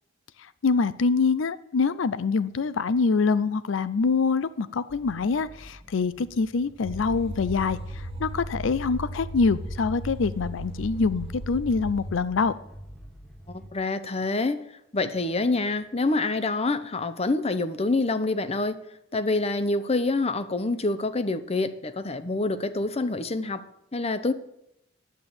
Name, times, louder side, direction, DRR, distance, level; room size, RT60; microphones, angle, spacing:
voice 1, 0.6-12.5, left 4 dB, 75° left, 0.5 m, -25 dB
sound 1, 4.9-13.7, equal, ahead, 1.1 m, -48 dB
sound 2, 6.8-12.1, right 1 dB, 30° right, 1.1 m, -36 dB
voice 2, 13.5-18.8 19.1-23.6 23.9-24.3, left 2 dB, 30° left, 0.8 m, -26 dB
10.5 x 7.9 x 8.8 m
head